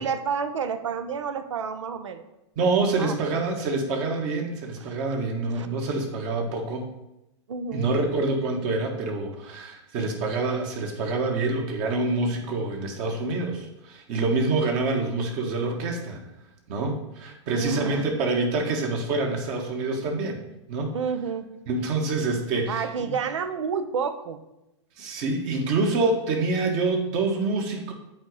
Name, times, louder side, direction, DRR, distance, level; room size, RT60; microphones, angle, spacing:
voice 1, 0.0-2.2 3.0-3.4 4.8-5.0 5.5-5.7 7.5-8.0 17.6-18.1 20.9-21.5 22.7-24.4, right 6 dB, 80° right, 10 dB, 0.7 m, -30 dB
voice 2, 2.5-6.8 7.7-16.2 16.7-20.4 20.7-20.9 21.7-23.1 25.0-27.9, right 3 dB, 45° right, 2 dB, 1.6 m, -26 dB
8.1 x 4.1 x 4.8 m, 0.91 s
hypercardioid pair, 110°, 15 cm